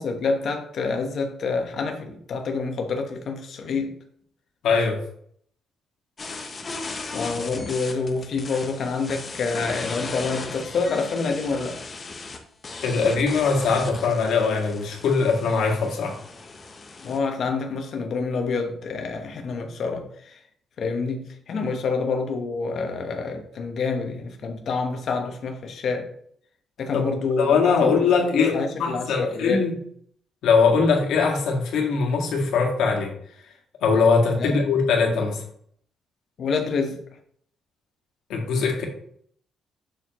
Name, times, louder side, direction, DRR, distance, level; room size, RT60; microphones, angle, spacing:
voice 1, 0.0-4.0 7.1-11.8 17.0-20.4 20.8-26.1 26.8-27.9 28.3-29.6 34.4-34.6 36.4-37.0, left 4 dB, 45° left, 1.1 m, -27 dB
voice 2, 4.6-5.0 12.8-16.2 26.9-27.0 27.4-29.8 30.4-33.1 33.8-35.4 38.3-38.8, left 5 dB, 70° left, 1.8 m, -21 dB
sound 1, 6.2-17.2, left 3 dB, 25° left, 0.8 m, -37 dB
6.9 x 6.5 x 3.0 m
cardioid pair, 170°, 0 cm